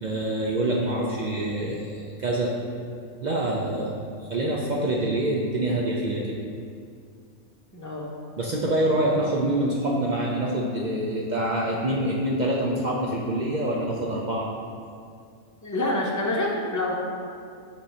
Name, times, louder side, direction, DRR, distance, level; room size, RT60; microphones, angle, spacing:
voice 1, 0.0-2.5 3.2-4.0 4.3-6.4 8.4-14.5, right 1 dB, 75° right, -3 dB, 0.4 m, -26 dB
voice 2, 7.7-8.1 15.6-16.9, left 1 dB, 15° left, -3 dB, 0.6 m, -27 dB
7.2 x 2.7 x 5.5 m, 2.3 s
omnidirectional pair, 1.5 m